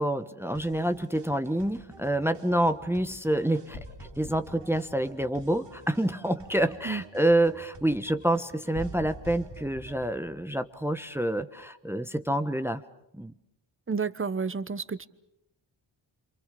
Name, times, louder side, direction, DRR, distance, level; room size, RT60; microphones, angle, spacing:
voice 1, 0.0-12.8 13.1-13.3, right 1 dB, 5° right, 1.1 m, -27 dB
sound 1, 0.5-10.1, right 4 dB, 65° right, 3.5 m, -51 dB
sound 2, 3.7-6.0 8.7-11.3, left 1 dB, 55° left, 2.9 m, -44 dB
voice 2, 13.9-15.1, right 5 dB, 25° right, 1.1 m, -30 dB
28.5 x 27.0 x 6.8 m
cardioid pair, 90°, 46 cm